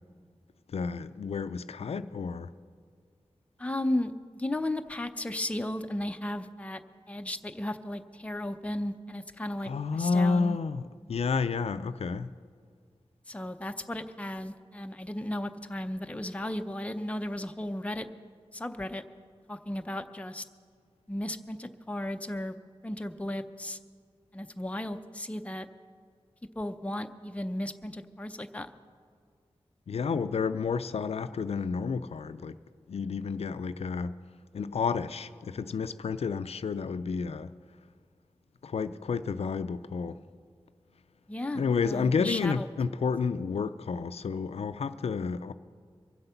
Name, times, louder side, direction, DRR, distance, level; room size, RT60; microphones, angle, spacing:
voice 1, 0.7-2.5 9.6-12.3 29.9-32.6 32.9-34.2 34.5-37.5 38.6-40.2 41.5-45.5, left 5 dB, 75° left, 0.4 m, -30 dB
voice 2, 3.6-6.8 7.1-10.6 13.3-18.1 18.5-19.0 19.5-20.4 21.1-22.5 22.8-23.8 24.3-25.7 26.6-28.7 41.3-42.7, left 1 dB, 10° left, 0.6 m, -35 dB
23.5 x 7.9 x 5.7 m
wide cardioid pair, 110°, 11 cm